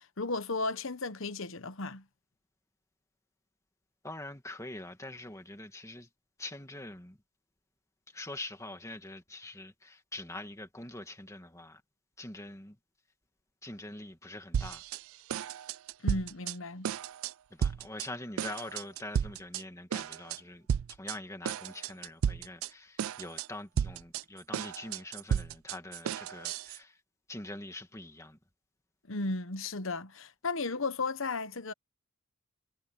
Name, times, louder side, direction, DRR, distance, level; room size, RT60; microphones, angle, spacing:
voice 1, 0.0-2.0 16.0-16.9 29.1-31.7, left 3 dB, 60° left, 1.1 m, -34 dB
voice 2, 4.0-6.1 6.4-7.2 8.1-11.8 12.2-12.8 13.6-14.8 17.5-27.0 27.3-28.4, left 2 dB, 15° left, 2.1 m, -44 dB
sound 1, 14.5-15.0 15.3-16.5 16.8-17.3 17.6-18.1 18.4-19.6 19.9-20.4 20.7-21.2 21.4-22.7 23.0-23.5 23.8-26.8, right 8 dB, 70° right, 0.3 m, -33 dB
head